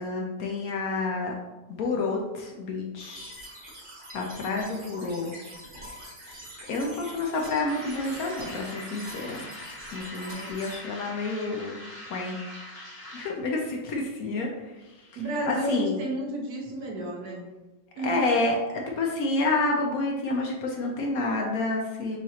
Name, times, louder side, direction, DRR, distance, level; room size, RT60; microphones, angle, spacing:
voice 1, 0.0-1.3 1.7-3.4 4.1-5.3 6.7-9.5 9.9-11.8 12.1-12.4 13.1-14.5 14.9-15.2 15.4-16.0 18.0-22.2, left 3 dB, 65° left, -1 dB, 1.0 m, -29 dB
sound 1, 3.0-10.8, equal, 35° right, 1.0 m, -44 dB
sound 2, 7.7-13.5, left 1 dB, 25° left, 0.9 m, -42 dB
voice 2, 15.1-17.4 18.0-18.4, right 1 dB, 65° right, -1 dB, 1.4 m, -32 dB
6.3 x 3.0 x 2.8 m, 1.1 s
omnidirectional pair, 1.9 m